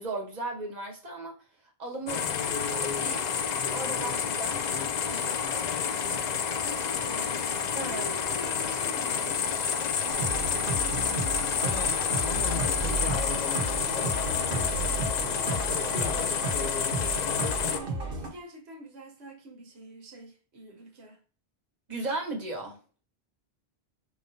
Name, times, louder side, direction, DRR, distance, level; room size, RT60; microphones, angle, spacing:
voice 1, 0.0-1.4 1.8-2.2 2.7-3.2 3.7-4.6 5.0-5.7 7.7-8.0 21.9-22.8, right 2 dB, 45° right, 1.3 m, -36 dB
sound 1, 2.1-17.8, left 7 dB, 55° left, 0.5 m, -29 dB
voice 2, 6.6-9.5 10.0-16.8 17.6-21.2, right 2 dB, 85° right, 1.1 m, -46 dB
sound 2, 10.1-18.3, right 3 dB, 65° right, 1.2 m, -33 dB
4.9 x 4.0 x 2.6 m
omnidirectional pair, 1.1 m